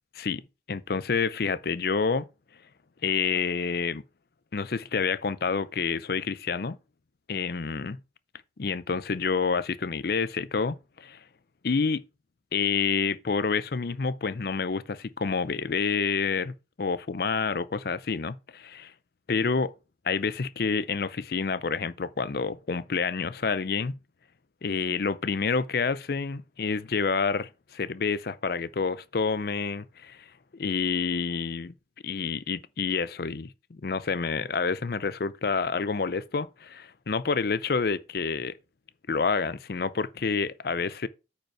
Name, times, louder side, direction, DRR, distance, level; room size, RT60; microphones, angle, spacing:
voice 1, 0.7-2.3 3.0-4.0 4.5-6.8 7.3-8.0 8.6-11.2 11.6-12.0 12.5-18.9 19.3-19.7 20.1-24.0 24.6-30.2 30.5-31.7 32.0-38.5 39.1-41.1, left 5 dB, 55° left, 0.5 m, -28 dB
8.9 x 5.3 x 4.7 m
head